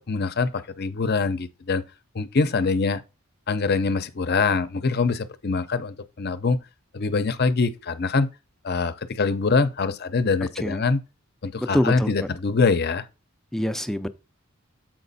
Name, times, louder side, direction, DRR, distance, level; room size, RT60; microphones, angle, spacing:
voice 1, 0.0-1.8 2.1-3.0 3.5-6.6 6.9-8.3 8.6-11.0 11.4-13.1, left 4 dB, 50° left, 0.7 m, -24 dB
voice 2, 11.6-12.3 13.5-14.1, equal, ahead, 0.5 m, -25 dB
7.6 x 5.0 x 4.1 m
head